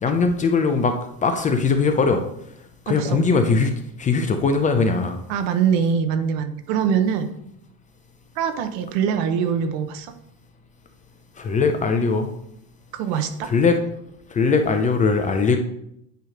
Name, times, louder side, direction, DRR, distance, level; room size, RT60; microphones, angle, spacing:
voice 1, 0.0-2.2 2.9-3.7 4.0-5.2 11.4-12.3 13.4-13.8 14.3-15.6, left 4 dB, 20° left, 6 dB, 0.5 m, -20 dB
voice 2, 2.9-3.2 5.3-7.3 8.4-10.1 12.9-13.5, right 7 dB, 60° right, 8 dB, 1.0 m, -23 dB
9.2 x 3.1 x 5.1 m, 0.75 s
supercardioid pair, 135°, 39 cm